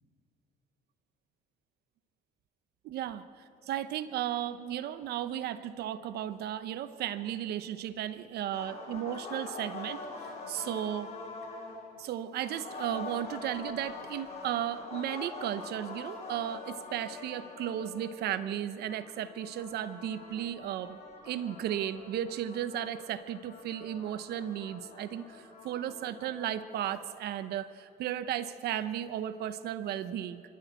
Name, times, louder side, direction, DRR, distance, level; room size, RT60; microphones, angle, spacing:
voice 1, 2.8-11.1 12.0-21.0 21.2-30.4, right 11 dB, 70° right, 13 dB, 0.9 m, -35 dB
sound 1, 8.5-11.9 12.4-18.5 18.8-27.0, left 3 dB, 40° left, 6.8 m, -45 dB
26.0 x 14.0 x 8.3 m, 2.7 s
cardioid pair, 110°, 17 cm